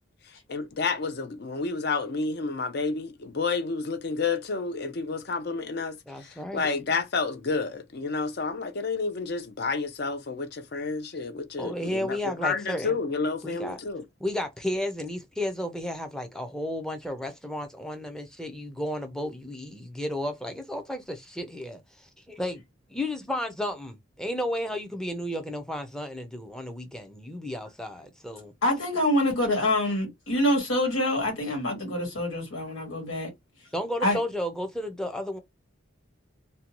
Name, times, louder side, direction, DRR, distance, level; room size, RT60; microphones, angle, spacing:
voice 1, 0.5-14.0, left 4 dB, 55° left, 0.5 m, -30 dB
voice 2, 6.1-6.7 11.6-13.1 13.4-13.8 14.2-22.6 22.9-28.5 33.7-35.4, left 1 dB, 5° left, 0.5 m, -33 dB
voice 3, 28.6-33.3 34.0-34.2, left 1 dB, 90° left, 1.4 m, -26 dB
2.6 x 2.2 x 2.9 m
head